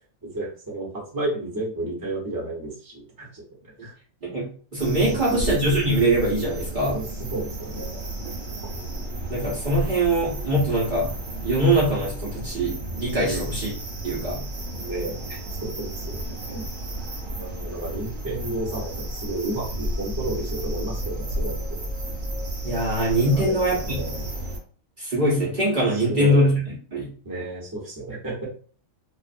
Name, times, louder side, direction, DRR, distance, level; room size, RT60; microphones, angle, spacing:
voice 1, 0.2-3.4 3.8-3.9 5.1-5.5 6.5-8.0 13.2-13.6 14.7-16.7 17.4-21.9 23.3-23.5 23.8-24.4 25.9-26.5 27.2-28.5, right 2 dB, 20° right, -5 dB, 0.8 m, -32 dB
voice 2, 4.2-6.9 9.3-11.1 11.4-13.7 14.0-14.4 22.6-24.0 25.0-26.6 26.9-27.1, right 1 dB, 45° right, -7 dB, 0.9 m, -22 dB
sound 1, 4.8-24.6, right 1 dB, 70° right, 1.2 m, -32 dB
2.5 x 2.4 x 2.5 m, 0.42 s
omnidirectional pair, 1.4 m